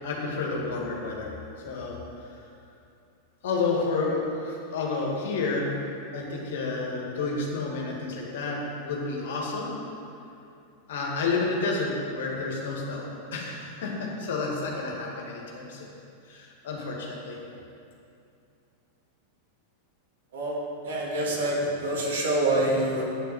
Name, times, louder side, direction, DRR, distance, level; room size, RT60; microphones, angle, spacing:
voice 1, 0.0-1.3 1.6-2.0 2.3-2.4 3.4-5.7 6.1-9.7 10.9-17.4, left 3 dB, 55° left, -2 dB, 2.1 m, -30 dB
voice 2, 20.8-23.0, right 1 dB, 60° right, -5 dB, 2.6 m, -26 dB
8.5 x 6.7 x 8.0 m, 2.6 s
figure-of-eight pair, 90°, 0 cm